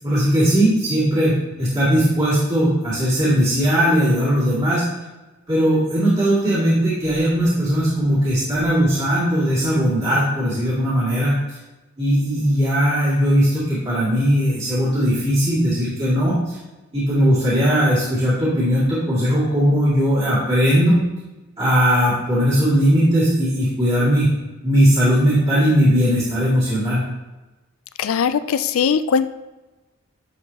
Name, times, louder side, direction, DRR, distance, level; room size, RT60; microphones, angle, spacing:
voice 1, 0.0-4.8 5.5-11.4 12.0-16.6 16.9-21.0 21.6-24.3 24.6-27.0, equal, 25° right, -13 dB, 2.4 m, -18 dB
voice 2, 28.0-29.3, left 6 dB, 75° left, 13 dB, 0.4 m, -20 dB
10.5 x 4.5 x 2.9 m, 1.1 s
head